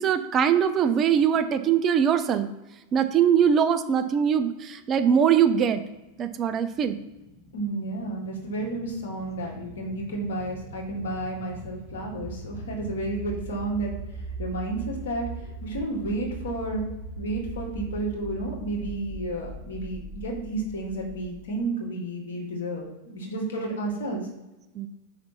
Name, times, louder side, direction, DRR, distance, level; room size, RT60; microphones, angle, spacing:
voice 1, 0.0-2.5 2.9-5.8 6.2-7.0 24.8-24.9, right 8 dB, 30° right, 10 dB, 0.5 m, -22 dB
sound 1, 5.7-21.4, right 3 dB, 15° left, 1.4 m, -40 dB
voice 2, 7.5-16.8 17.2-24.2, right 2 dB, 60° left, -1 dB, 1.9 m, -31 dB
5.1 x 4.0 x 5.8 m, 1.0 s
figure-of-eight pair, 90°, 0 cm